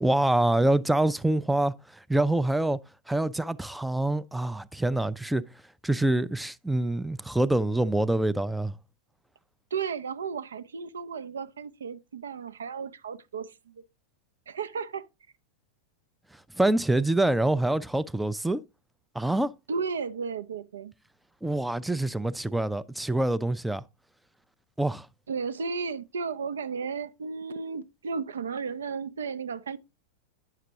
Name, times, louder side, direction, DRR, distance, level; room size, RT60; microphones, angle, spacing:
voice 1, 0.0-2.8 3.1-5.4 5.8-8.8 16.6-18.6 19.1-19.5 21.4-23.8 24.8-25.1, right 1 dB, 5° right, 0.4 m, -25 dB
voice 2, 9.7-13.8 14.5-15.1 19.7-20.9 25.3-29.8, right 5 dB, 65° right, 0.4 m, -34 dB
9.4 x 6.6 x 2.8 m
figure-of-eight pair, 90°, 0 cm